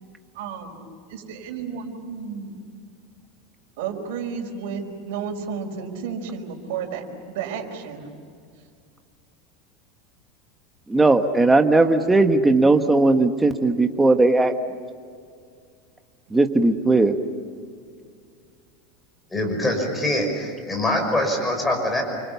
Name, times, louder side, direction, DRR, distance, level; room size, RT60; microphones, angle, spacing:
voice 1, 0.3-0.8 1.1-2.5 3.8-8.1, right 6 dB, 75° right, 3 dB, 5.1 m, -32 dB
voice 2, 10.9-14.5 16.3-17.2, right 2 dB, 10° right, 6 dB, 1.4 m, -17 dB
voice 3, 19.3-22.0, left 1 dB, 10° left, 2 dB, 5.8 m, -24 dB
29.5 x 25.0 x 7.1 m, 2.2 s
supercardioid pair, 150°, 0 cm